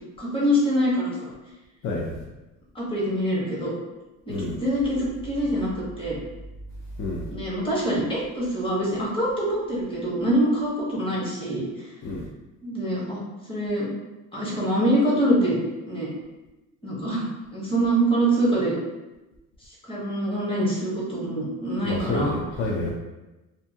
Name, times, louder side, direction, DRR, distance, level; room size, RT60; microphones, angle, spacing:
voice 1, 0.2-1.3 2.7-3.7 4.3-6.2 7.3-11.6 12.6-13.2 13.5-13.9 14.3-15.6 15.9-16.1 16.8-17.2 17.5-18.7 19.9-22.3, right 1 dB, 15° left, -5 dB, 0.8 m, -24 dB
voice 2, 1.8-2.2 4.3-4.5 7.0-7.2 12.0-12.3 21.8-22.9, left 2 dB, 40° left, -3 dB, 0.4 m, -28 dB
2.6 x 2.5 x 2.7 m, 1.0 s
cardioid pair, 150°, 33 cm